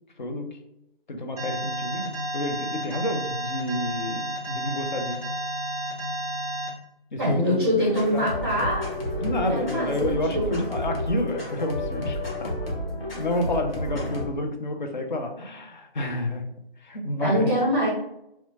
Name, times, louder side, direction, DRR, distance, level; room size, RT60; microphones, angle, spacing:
voice 1, 0.2-0.6 1.1-5.2 7.1-8.3 9.1-12.5 13.2-16.4 16.8-17.5, left 1 dB, 50° left, 4 dB, 0.5 m, -29 dB
Alarm, 1.4-6.7, right 1 dB, 10° left, 0.8 m, -31 dB
voice 2, 7.2-10.5 17.2-17.9, equal, 25° right, -6 dB, 0.5 m, -25 dB
sound 1, 7.8-14.3, left 1 dB, 65° left, 1.0 m, -31 dB
2.7 x 2.1 x 2.7 m, 0.84 s
figure-of-eight pair, 155°, 31 cm